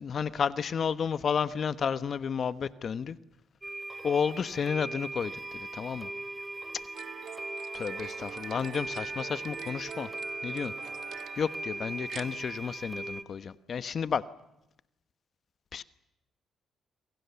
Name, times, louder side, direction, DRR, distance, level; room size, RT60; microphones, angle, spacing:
voice 1, 0.0-3.2 4.0-6.1 7.7-10.1 10.4-10.7 11.4-14.2 15.7-15.8, left 6 dB, 50° left, 14 dB, 1.1 m, -31 dB
sound 1, 3.6-13.2, right 2 dB, 15° right, 2.5 m, -39 dB
sound 2, 6.9-12.3, right 8 dB, 65° right, 1.7 m, -44 dB
28.0 x 25.5 x 7.0 m, 0.87 s
cardioid pair, 90°, 0 cm